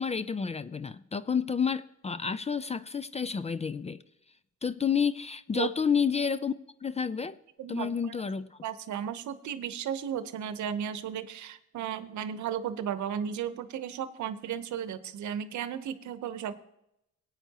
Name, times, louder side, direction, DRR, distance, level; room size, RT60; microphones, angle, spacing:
voice 1, 0.0-4.0 4.6-6.5 6.8-7.4 7.7-8.6, left 6 dB, 20° left, 15 dB, 0.4 m, -30 dB
voice 2, 7.6-8.2 8.6-16.6, right 9 dB, 70° right, 12 dB, 0.9 m, -34 dB
17.0 x 9.1 x 2.9 m, 0.81 s
cardioid pair, 90°, 30 cm